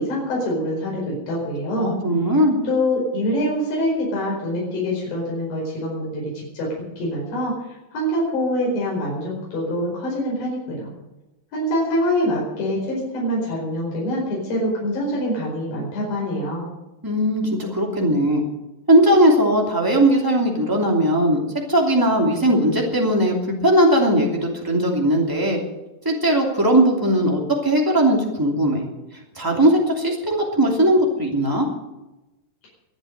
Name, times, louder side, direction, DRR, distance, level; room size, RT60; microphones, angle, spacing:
voice 1, 0.0-2.0 2.6-10.9 11.5-16.7, equal, 90° left, -4 dB, 7.0 m, -25 dB
voice 2, 1.8-2.6 17.0-18.4 18.9-21.4 21.7-23.4 23.6-25.6 26.0-28.8 29.4-31.7, right 1 dB, 5° right, -1 dB, 1.9 m, -18 dB
23.0 x 8.1 x 6.6 m, 1.0 s
omnidirectional pair, 4.7 m